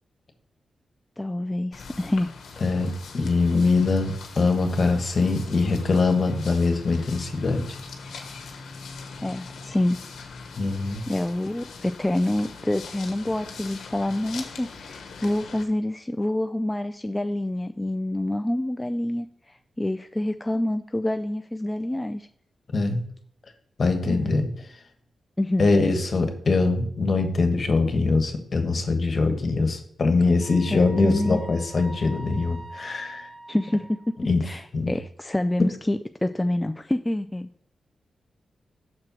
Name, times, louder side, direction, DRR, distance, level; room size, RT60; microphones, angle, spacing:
voice 1, 1.2-2.3 9.2-10.0 10.4-10.5 11.1-22.3 24.1-24.4 25.4-25.7 30.7-31.4 33.5-37.5, left 1 dB, 15° left, 7 dB, 0.3 m, -27 dB
sound 1, 1.7-15.6, left 4 dB, 90° left, 1.0 m, -42 dB
voice 2, 2.6-7.6 10.6-11.0 22.7-23.0 23.8-24.5 25.6-33.3 34.2-34.4 34.7-34.9, left 3 dB, 50° left, 5 dB, 1.3 m, -23 dB
Wind instrument woodwind instrument, 30.4-34.3, right 2 dB, 60° right, 2.9 m, -44 dB
6.3 x 4.4 x 6.0 m, 0.63 s
cardioid pair, 80°, 0 cm